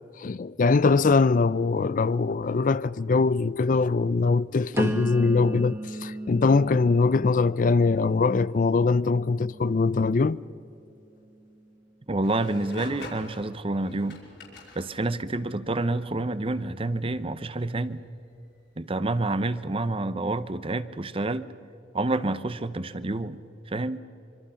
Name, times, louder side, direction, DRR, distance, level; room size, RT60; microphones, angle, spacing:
voice 1, 0.2-10.4, left 4 dB, 45° left, 0.4 m, -22 dB
sound 1, 4.7-10.6 11.1-11.6, right 1 dB, 15° right, 1.6 m, -36 dB
voice 2, 12.1-14.2 14.8-18.0 18.8-21.5 21.9-23.4 23.7-24.0, right 2 dB, 30° right, 0.8 m, -28 dB
sound 2, 12.2-14.9 16.9-17.1 18.4-18.5, left 3 dB, 70° left, 5.5 m, -44 dB
25.5 x 25.0 x 5.7 m
head